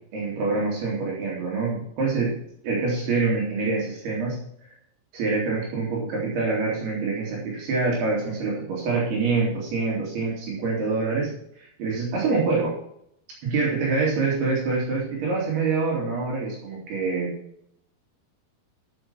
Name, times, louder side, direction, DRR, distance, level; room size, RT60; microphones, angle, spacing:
voice 1, 0.1-2.4 2.6-4.4 5.1-11.3 11.6-12.7 13.4-17.4, right 4 dB, 75° right, -3 dB, 4.5 m, -25 dB
11.0 x 6.7 x 5.8 m, 0.72 s
omnidirectional pair, 4.7 m